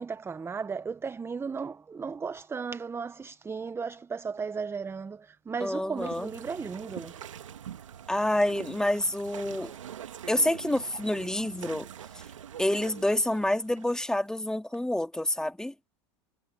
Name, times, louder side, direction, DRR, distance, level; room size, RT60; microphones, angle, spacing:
voice 1, 0.0-7.1, right 5 dB, 15° right, 0.8 m, -35 dB
voice 2, 5.6-6.3 8.1-9.7 10.3-11.9 12.6-15.7, left 1 dB, 5° left, 2.5 m, -28 dB
sound 1, 6.0-14.2, right 9 dB, 90° right, 2.1 m, -44 dB
hypercardioid pair, 100°, 16 cm